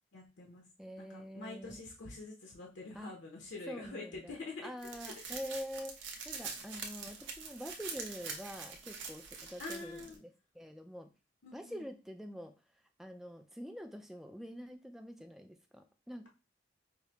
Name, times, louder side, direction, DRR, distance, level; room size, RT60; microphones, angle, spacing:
voice 1, 0.1-0.6 1.0-4.7 5.0-5.2 9.6-10.2 11.4-11.9, left 3 dB, 85° left, 0 dB, 0.8 m, -46 dB
voice 2, 0.8-1.8 2.9-3.1 3.7-4.4 4.6-10.3 10.5-11.1 11.5-12.5 13.0-16.3, equal, ahead, 5 dB, 0.3 m, -46 dB
sound 1, 4.8-10.2, right 5 dB, 85° right, 0.7 m, -44 dB
4.8 x 2.0 x 2.8 m, 0.31 s
head